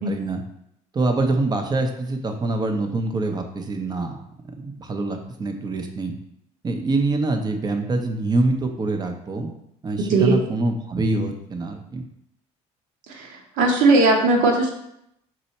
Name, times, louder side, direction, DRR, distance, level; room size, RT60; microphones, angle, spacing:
voice 1, 0.1-0.4 0.9-4.2 4.6-6.1 6.6-9.5 9.8-12.0, right 2 dB, 30° right, 5 dB, 0.8 m, -25 dB
voice 2, 13.1-14.7, right 3 dB, 70° right, 1 dB, 1.0 m, -18 dB
4.3 x 2.7 x 4.1 m, 0.77 s
supercardioid pair, 85°, 14 cm